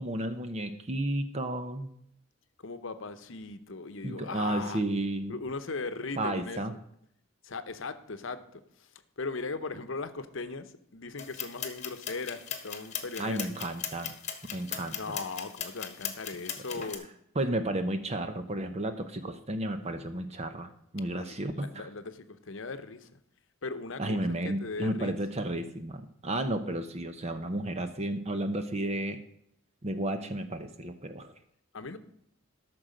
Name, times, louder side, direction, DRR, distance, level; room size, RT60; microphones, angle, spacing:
voice 1, 0.0-1.9 4.0-5.4 6.2-6.7 13.2-14.2 14.5-15.2 17.4-21.9 24.0-29.2 29.8-31.3, right 1 dB, 30° right, 8 dB, 0.7 m, -32 dB
voice 2, 2.6-4.8 5.3-6.8 7.4-13.5 14.8-17.1 21.2-23.2 23.6-25.1 31.7-32.0, left 3 dB, 65° left, 11 dB, 0.9 m, -38 dB
sound 1, 11.2-17.0, left 8 dB, 35° left, 1.3 m, -39 dB
13.0 x 6.2 x 5.1 m, 0.71 s
head